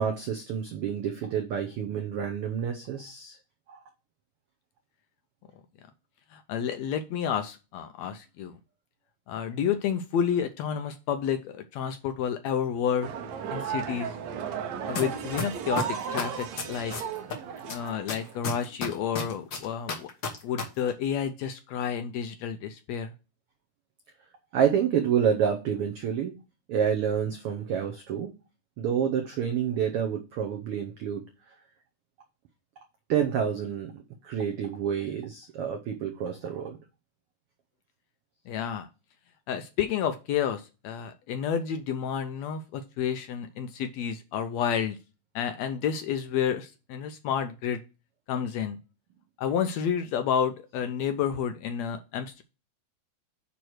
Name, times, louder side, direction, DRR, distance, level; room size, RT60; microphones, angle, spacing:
voice 1, 0.0-3.4 3.7-3.8 24.5-26.4 26.7-28.3 28.8-31.2 33.1-33.9 34.2-36.8, right 8 dB, 90° right, 4 dB, 1.2 m, -28 dB
voice 2, 6.3-8.6 9.3-13.1 13.5-14.1 14.9-16.9 17.7-20.1 20.4-23.1 38.5-38.9 39.5-45.0 45.3-47.8 48.3-48.8 49.4-52.4, left 8 dB, 75° left, 8 dB, 1.6 m, -30 dB
sound 1, 13.0-18.8, right 7 dB, 70° right, 2.1 m, -35 dB
sound 2, 14.9-15.0 15.4-17.3 17.7-20.6 20.9-21.0, left 5 dB, 50° left, 1.5 m, -31 dB
9.2 x 3.1 x 6.4 m, 0.31 s
omnidirectional pair, 3.6 m